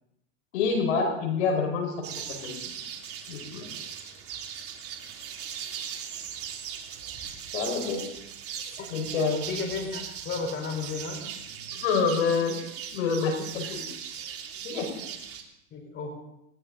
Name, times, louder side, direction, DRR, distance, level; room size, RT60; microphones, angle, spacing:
voice 1, 0.5-1.9 2.3-2.7 3.3-3.6 7.5-8.0 8.9-9.5 11.7-12.6 12.9-13.9 14.6-14.9, left 5 dB, 70° left, 4 dB, 5.4 m, -27 dB
sound 1, 2.0-15.4, right 8 dB, 40° right, 3.1 m, -39 dB
voice 2, 9.5-11.2 15.7-16.1, left 4 dB, 30° left, 2 dB, 4.6 m, -33 dB
19.0 x 18.5 x 4.0 m, 0.82 s
supercardioid pair, 125°, 36 cm